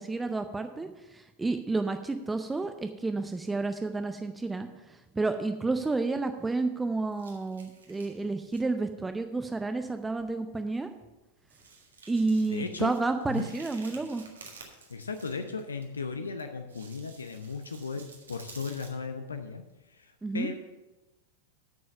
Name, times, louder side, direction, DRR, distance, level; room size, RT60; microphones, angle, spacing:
voice 1, 0.0-10.9 12.1-14.2 20.2-20.5, right 3 dB, 10° right, 8 dB, 0.6 m, -30 dB
sound 1, 6.0-6.8 7.1-8.7 9.0-9.2 9.9-10.0 10.2-10.4 10.7-10.8 11.4-15.8 16.4-18.9, right 4 dB, 70° right, 1.7 m, -52 dB
voice 2, 12.5-12.9 13.3-13.5 14.9-20.5, left 4 dB, 75° left, 7 dB, 0.7 m, -36 dB
8.9 x 6.4 x 6.7 m, 1.0 s
figure-of-eight pair, 90°, 0 cm